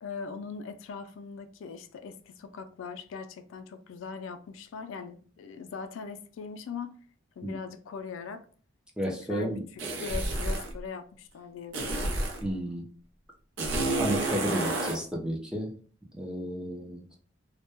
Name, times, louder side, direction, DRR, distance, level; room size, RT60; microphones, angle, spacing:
voice 1, 0.0-7.0 7.4-8.5 9.1-9.5 10.0-12.1, left 5 dB, 85° left, 0.3 m, -40 dB
voice 2, 9.0-9.6 12.4-12.8 14.0-15.7 16.1-17.2, equal, 5° right, 0.5 m, -32 dB
sound 1, 9.8-10.7 11.7-12.4 13.6-15.0, right 2 dB, 75° right, 0.6 m, -30 dB
2.1 x 2.1 x 2.9 m
head